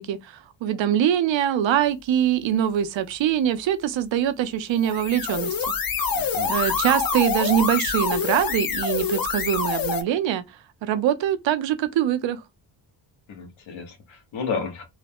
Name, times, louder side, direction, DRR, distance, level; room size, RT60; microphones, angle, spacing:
voice 1, 0.0-5.5 6.5-10.4 10.8-12.4, right 10 dB, 70° right, 0.7 m, -23 dB
sound 1, 4.8-10.0, left 5 dB, 45° left, 0.9 m, -26 dB
voice 2, 6.1-6.5 13.3-14.8, left 5 dB, 75° left, 1.4 m, -32 dB
3.7 x 2.2 x 3.5 m
cardioid pair, 100°, 48 cm